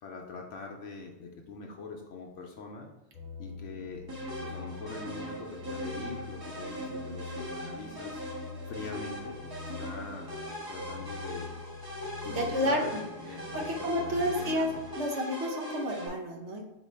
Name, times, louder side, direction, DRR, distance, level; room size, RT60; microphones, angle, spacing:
voice 1, 0.0-2.9 3.4-4.1 4.4-8.2 8.7-10.3 10.7-11.5 12.2-14.8, left 4 dB, 75° left, 1 dB, 0.9 m, -43 dB
sound 1, 3.1-14.9, left 3 dB, 35° left, 0.9 m, -44 dB
sound 2, 4.1-16.1, equal, 20° right, 1.0 m, -40 dB
voice 2, 12.2-12.8 13.5-14.7 14.9-16.6, equal, 65° right, 1 dB, 1.0 m, -30 dB
4.4 x 2.7 x 4.2 m, 0.94 s
omnidirectional pair, 1.3 m